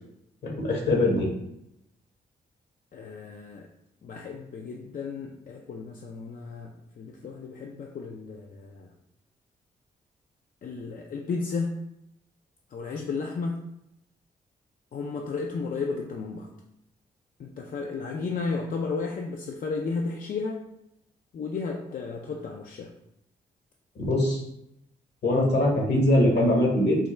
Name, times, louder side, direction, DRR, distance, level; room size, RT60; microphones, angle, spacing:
voice 1, 0.4-1.3 24.0-24.4 25.2-27.0, left 1 dB, 65° left, -1 dB, 1.1 m, -22 dB
voice 2, 2.9-3.7 4.0-8.9 10.6-11.7 12.7-13.6 14.9-16.5 17.4-20.6 21.3-22.9, left 4 dB, 50° left, 1 dB, 0.4 m, -33 dB
3.4 x 2.1 x 3.1 m, 0.80 s
supercardioid pair, 45°, 19 cm